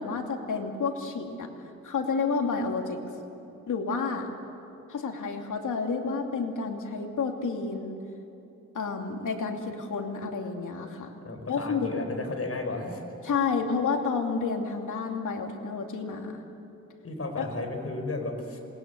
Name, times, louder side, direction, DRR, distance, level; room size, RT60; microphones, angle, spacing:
voice 1, 0.0-1.5 1.8-3.0 3.7-4.3 4.9-8.0 8.7-11.1 11.5-12.0 13.2-16.4 17.4-17.5, left 4 dB, 90° left, 2 dB, 2.6 m, -30 dB
voice 2, 11.2-13.2 17.0-18.6, left 2 dB, 50° left, 4 dB, 4.9 m, -34 dB
27.0 x 21.0 x 8.2 m, 2.9 s
cardioid pair, 85°, 30 cm